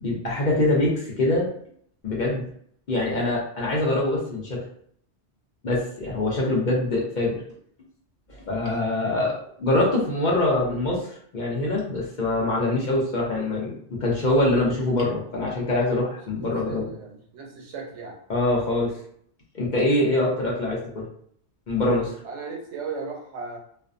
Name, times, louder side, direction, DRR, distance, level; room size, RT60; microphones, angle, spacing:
voice 1, 0.0-1.5 2.0-2.5 2.9-4.6 5.6-7.4 8.5-16.9 18.3-18.9 19.5-21.0 21.7-22.1, left 2 dB, 50° left, -3 dB, 0.7 m, -24 dB
voice 2, 16.4-18.2 22.2-23.6, right 4 dB, 85° right, 0 dB, 1.0 m, -36 dB
2.5 x 2.2 x 2.5 m, 0.64 s
omnidirectional pair, 1.2 m